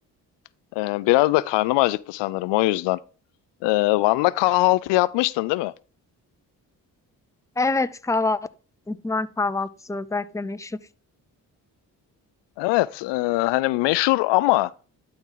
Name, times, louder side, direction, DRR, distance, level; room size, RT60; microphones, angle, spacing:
voice 1, 0.8-3.0 3.6-5.7 12.6-14.7, left 19 dB, 85° left, 0.5 m, -21 dB
voice 2, 7.6-8.4 8.9-10.8, left 3 dB, 10° left, 0.6 m, -25 dB
11.5 x 4.4 x 3.9 m
supercardioid pair, 50°, 42 cm